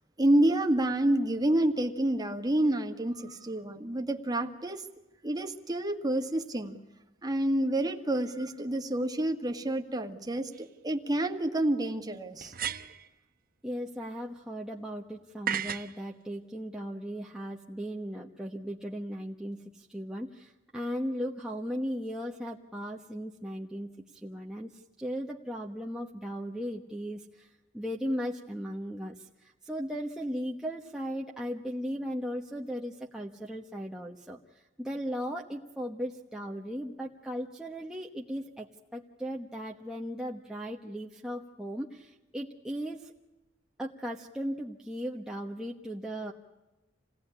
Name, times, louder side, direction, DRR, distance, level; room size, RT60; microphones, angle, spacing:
voice 1, 0.2-4.8 5.2-6.8 7.2-12.5, right 1 dB, 20° right, 5 dB, 1.8 m, -28 dB
sound 1, 10.5-10.6 12.4-13.1 15.5-15.9, right 8 dB, 50° right, 1.2 m, -33 dB
voice 2, 13.6-27.5 27.7-34.4 34.8-43.1 43.8-46.3, equal, 5° right, -2 dB, 1.2 m, -37 dB
28.0 x 18.0 x 9.9 m, 1.1 s
head